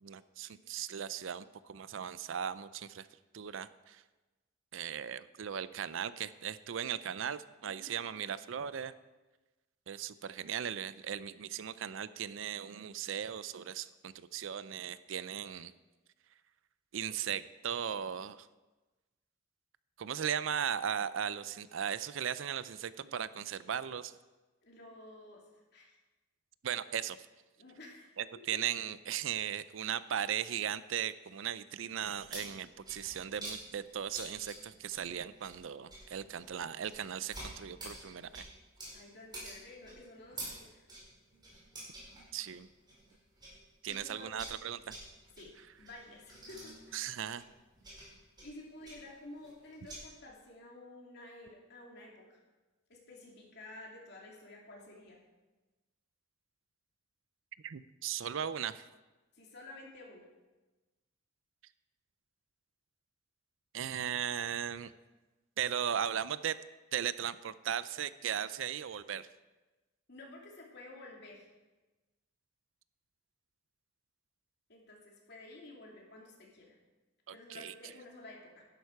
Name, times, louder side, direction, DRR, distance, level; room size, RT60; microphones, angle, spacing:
voice 1, 0.0-3.1 3.3-4.0 4.7-8.9 9.9-15.7 16.9-18.5 20.0-24.1 26.6-27.2 28.2-38.5 42.3-42.7 43.8-45.0 46.9-47.4 57.6-58.8 63.7-64.9 65.6-66.6 66.9-69.3 77.5-77.7, right 8 dB, 70° right, 16 dB, 0.5 m, -37 dB
voice 2, 24.6-25.4 25.7-25.9 27.6-28.2 32.4-32.5 38.9-40.9 43.9-44.4 45.4-45.5 45.8-47.1 48.4-52.4 52.9-55.2 59.3-60.3 70.1-71.5 74.7-76.8 77.3-78.6, left 2 dB, 55° left, -2 dB, 2.8 m, -52 dB
sound 1, 32.0-43.6 43.9-50.0, right 1 dB, 20° right, 4.5 m, -49 dB
11.5 x 11.0 x 4.7 m, 1.2 s
head